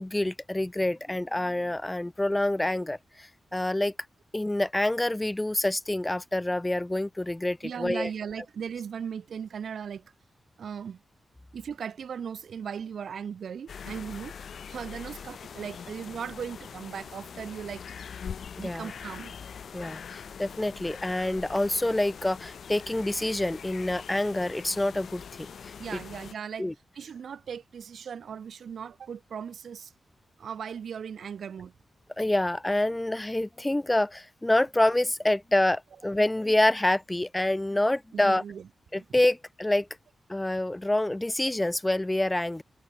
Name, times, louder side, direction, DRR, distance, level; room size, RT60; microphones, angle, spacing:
voice 1, 0.0-3.9 4.3-8.1 18.6-18.9 19.7-26.0 26.6-26.7 32.2-38.4 38.9-39.9 40.3-42.6, left 1 dB, 10° left, 0.4 m, -27 dB
voice 2, 7.6-10.1 10.6-11.0 11.5-14.3 14.7-18.0 18.5-19.3 25.8-26.7 26.9-29.9 30.4-31.7 38.1-39.1, right 7 dB, 65° right, 0.9 m, -38 dB
sound 1, 13.7-26.3, left 7 dB, 60° left, 1.8 m, -43 dB
wide cardioid pair, 170°, 0 cm